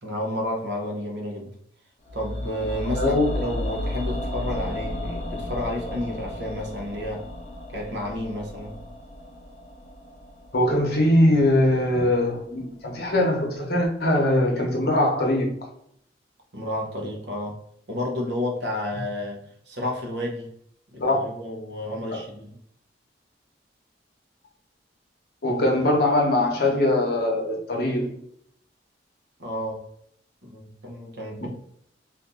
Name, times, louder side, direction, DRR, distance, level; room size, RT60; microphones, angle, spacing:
voice 1, 0.0-1.5 2.1-7.3 7.7-8.8 16.5-17.6 17.9-20.5 20.9-22.6 29.4-29.9 30.4-31.5, left 1 dB, 70° right, 1 dB, 0.9 m, -31 dB
sound 1, 2.1-12.2 12.5-12.6, left 1 dB, 40° left, 0.5 m, -34 dB
voice 2, 3.0-3.3 10.5-15.6 21.0-21.2 22.1-22.2 25.4-28.2 31.4-31.5, left 1 dB, 55° left, 0 dB, 0.9 m, -21 dB
2.6 x 2.6 x 3.7 m, 0.68 s
head